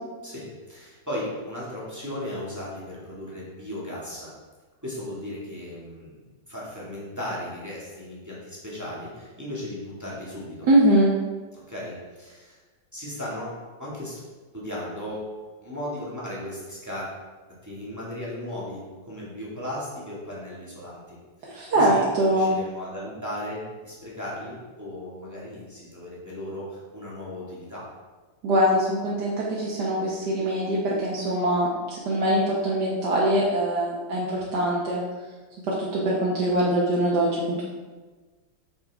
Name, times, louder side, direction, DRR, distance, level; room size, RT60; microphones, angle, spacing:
voice 1, 0.2-4.3 4.8-10.7 11.7-12.6 12.9-14.2 14.5-15.3 15.6-17.1 17.6-27.9, left 1 dB, 10° right, -7 dB, 1.9 m, -36 dB
voice 2, 10.7-11.1 21.5-22.5 28.4-35.0 35.7-37.7, right 1 dB, 60° right, -5 dB, 1.6 m, -23 dB
8.5 x 6.3 x 3.6 m, 1.3 s
omnidirectional pair, 2.1 m